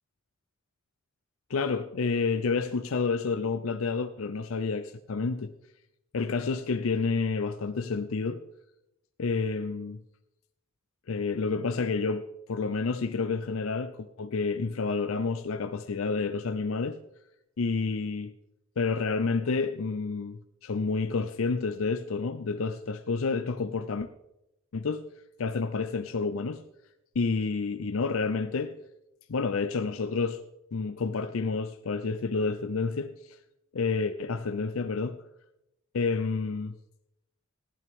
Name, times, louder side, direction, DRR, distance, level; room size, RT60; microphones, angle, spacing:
voice 1, 1.5-5.5 6.1-8.4 9.2-10.0 11.1-17.0 17.6-18.3 18.8-24.1 24.7-25.0 25.4-26.6 27.2-28.7 29.3-30.4 30.7-33.1 33.7-35.2 35.9-36.7, left 4 dB, 75° left, 0.5 m, -29 dB
15.5 x 11.0 x 3.6 m
head